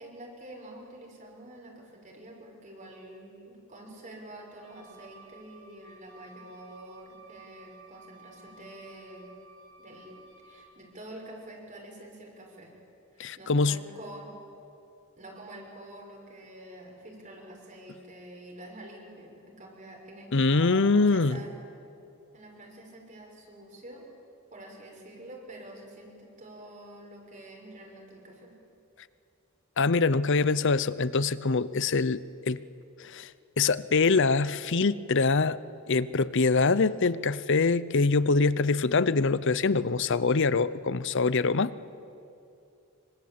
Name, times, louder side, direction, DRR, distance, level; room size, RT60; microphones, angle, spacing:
voice 1, 0.0-9.3 9.8-10.1 10.4-12.7 13.4-14.3 15.2-21.5 22.3-24.1 24.5-28.5, right 1 dB, 35° right, 0 dB, 5.9 m, -47 dB
Wind instrument woodwind instrument, 4.5-10.8, right 4 dB, 65° right, 4.6 m, -55 dB
voice 2, 13.2-13.8 20.3-21.4 29.8-32.6 33.0-33.3 33.6-35.6 35.9-41.7, left 4 dB, 55° left, 17 dB, 0.7 m, -24 dB
26.0 x 25.0 x 8.7 m, 2.6 s
head